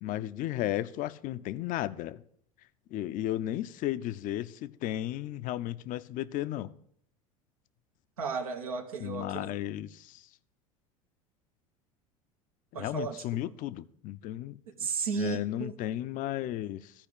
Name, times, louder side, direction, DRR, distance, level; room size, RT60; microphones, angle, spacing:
voice 1, 0.0-2.2 2.9-6.7 9.0-10.2 12.7-14.6 15.2-16.9, left 13 dB, 50° left, 0.6 m, -34 dB
voice 2, 8.2-9.5 12.7-13.4 14.8-15.8, right 6 dB, 85° right, 1.2 m, -34 dB
13.5 x 5.0 x 8.3 m
hypercardioid pair, 80°, 18 cm